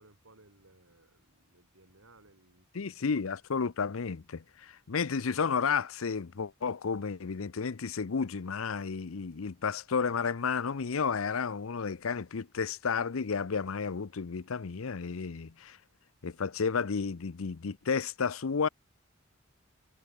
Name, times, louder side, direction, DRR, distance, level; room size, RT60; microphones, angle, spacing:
voice 1, 0.0-3.2, right 2 dB, 80° right, 5.7 m, -61 dB
voice 2, 2.7-15.8 16.2-18.7, left 5 dB, 85° left, 0.7 m, -32 dB
head